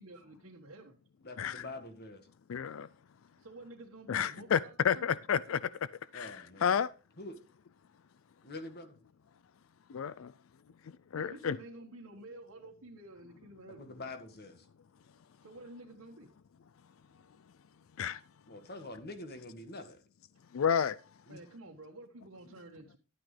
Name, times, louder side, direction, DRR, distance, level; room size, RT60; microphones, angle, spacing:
voice 1, 0.0-1.0 3.4-5.1 11.1-13.8 15.4-16.3 21.3-23.0, right 2 dB, 80° right, 1.5 m, -50 dB
voice 2, 1.2-2.3 6.1-6.8 7.2-7.4 8.4-9.0 13.8-14.7 18.5-20.0 21.3-21.4, left 2 dB, 50° left, 1.8 m, -45 dB
voice 3, 2.5-2.9 4.1-4.6 4.8-5.6 6.1-6.3 6.6-6.9 9.9-10.3 11.1-11.6 18.0-18.2 20.5-21.0, left 7 dB, 65° left, 0.4 m, -30 dB
12.0 x 9.0 x 3.3 m
head